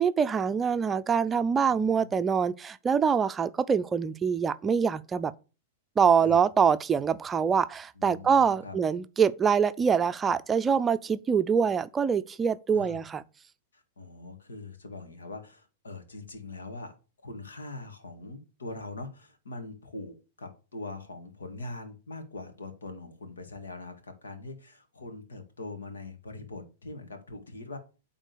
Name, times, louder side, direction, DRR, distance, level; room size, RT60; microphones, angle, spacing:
voice 1, 0.0-5.3 6.0-13.2, right 6 dB, 20° right, 0.5 m, -25 dB
voice 2, 1.4-2.2 6.2-6.5 8.0-8.8 12.7-13.0 13.7-16.9 17.2-27.8, left 2 dB, 75° left, 2.0 m, -42 dB
9.1 x 3.8 x 6.8 m
figure-of-eight pair, 100°, 0 cm